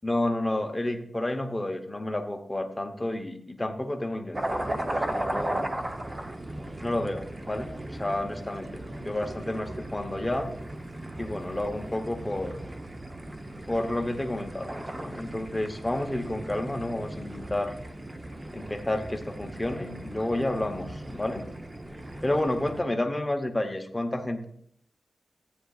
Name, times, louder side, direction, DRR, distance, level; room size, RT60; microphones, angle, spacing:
voice 1, 0.0-5.6 6.8-10.5 11.2-12.5 13.7-17.7 18.5-21.5 22.2-24.5, left 1 dB, 15° left, 5 dB, 0.9 m, -30 dB
sound 1, 4.3-22.8, right 1 dB, 20° right, 0.7 m, -37 dB
sound 2, 7.7-13.1, right 2 dB, 80° right, 1.4 m, -51 dB
14.5 x 9.2 x 2.4 m, 0.66 s
wide cardioid pair, 170°, 0 cm